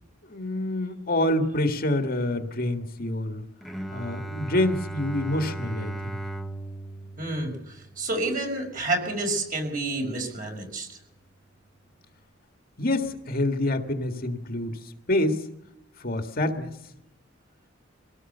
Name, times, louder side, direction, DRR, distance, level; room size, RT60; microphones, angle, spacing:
voice 1, 0.3-3.4 3.9-6.2 12.8-14.8 15.1-15.4 16.0-16.7, left 1 dB, 45° left, 5 dB, 1.9 m, -27 dB
Bowed string instrument, 3.6-9.3, right 2 dB, ahead, 1.2 m, -37 dB
voice 2, 7.2-7.5 8.0-10.9, right 2 dB, 40° right, 2 dB, 5.7 m, -29 dB
24.5 x 18.0 x 6.9 m, 0.86 s
head